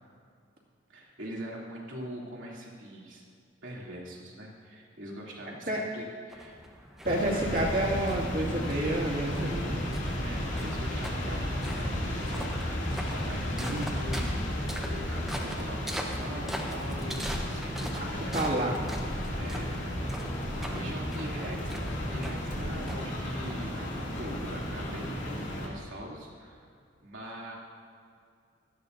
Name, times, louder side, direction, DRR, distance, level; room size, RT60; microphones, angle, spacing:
voice 1, 0.9-3.2 3.6-6.6 7.1-7.6 10.2-20.1 20.6-26.7 27.0-27.5, right 1 dB, 85° right, -4 dB, 2.9 m, -42 dB
voice 2, 5.5-5.8 7.0-9.9 18.0-18.1 18.3-18.8, right 1 dB, 45° right, -3 dB, 2.3 m, -29 dB
sound 1, 6.3-24.0, equal, ahead, 0.9 m, -43 dB
sound 2, 7.0-25.7, equal, 75° left, 2.6 m, -33 dB
sound 3, 17.2-17.9 18.1-18.3 18.9-19.6 20.4-20.7 21.6-22.1 22.4-23.1, equal, 40° left, 2.7 m, -41 dB
17.0 x 13.5 x 2.7 m, 2.3 s
head